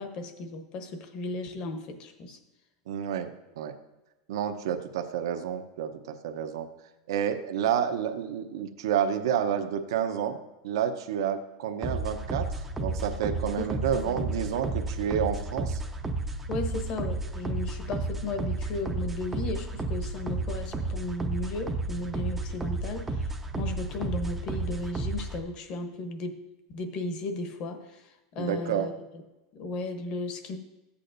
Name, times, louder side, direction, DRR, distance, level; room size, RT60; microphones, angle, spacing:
voice 1, 0.0-2.4 13.6-14.1 16.5-26.4 26.7-28.9 29.5-30.6, left 2 dB, 35° left, 7 dB, 0.9 m, -35 dB
voice 2, 2.9-3.3 3.6-3.7 4.3-6.7 7.1-10.4 10.6-12.5 12.8-15.8 28.4-28.9, right 8 dB, 75° right, 6 dB, 0.8 m, -29 dB
sound 1, 11.8-25.4, right 2 dB, 10° right, 0.5 m, -32 dB
13.5 x 8.4 x 2.6 m, 1.0 s
supercardioid pair, 165°, 2 cm